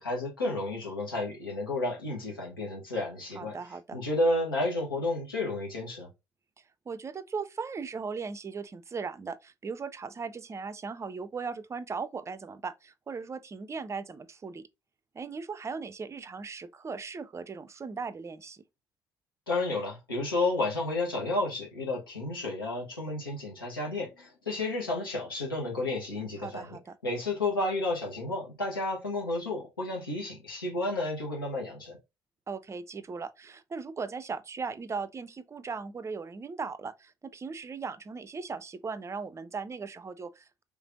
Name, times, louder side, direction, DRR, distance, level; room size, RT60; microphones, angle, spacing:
voice 1, 0.0-3.6 3.9-6.1 19.5-26.8 27.0-32.0, left 2 dB, 85° left, 1.0 m, -31 dB
voice 2, 3.3-4.0 6.9-14.7 15.1-18.6 26.4-27.0 32.5-40.6, right 5 dB, 25° right, 0.4 m, -38 dB
3.4 x 3.3 x 2.4 m
figure-of-eight pair, 50°, 12 cm